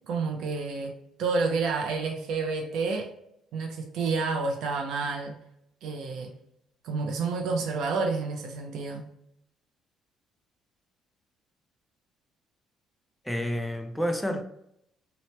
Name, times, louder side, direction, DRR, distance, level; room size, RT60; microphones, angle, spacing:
voice 1, 0.1-3.1 3.5-5.4 5.8-6.3 6.8-9.1, right 4 dB, 65° right, 0.4 m, -29 dB
voice 2, 13.3-14.4, equal, 5° left, 0.3 m, -29 dB
2.9 x 2.0 x 3.0 m
cardioid pair, 170°, 0 cm